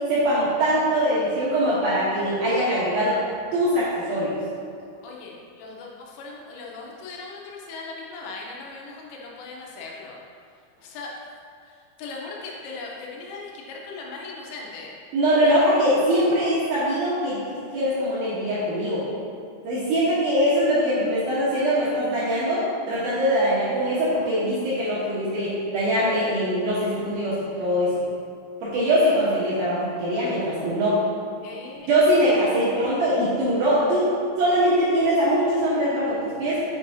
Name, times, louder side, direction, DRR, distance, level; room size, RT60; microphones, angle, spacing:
voice 1, 0.1-3.2 3.5-4.3 15.1-19.0 19.6-27.9 28.6-31.0 31.9-34.1 34.4-36.6, equal, 70° right, -10 dB, 2.4 m, -22 dB
voice 2, 5.0-10.2 10.8-11.2 11.6-15.0 15.3-15.6 31.4-31.9, left 3 dB, 90° left, -2 dB, 3.4 m, -38 dB
7.0 x 6.3 x 2.7 m, 2.3 s
omnidirectional pair, 5.5 m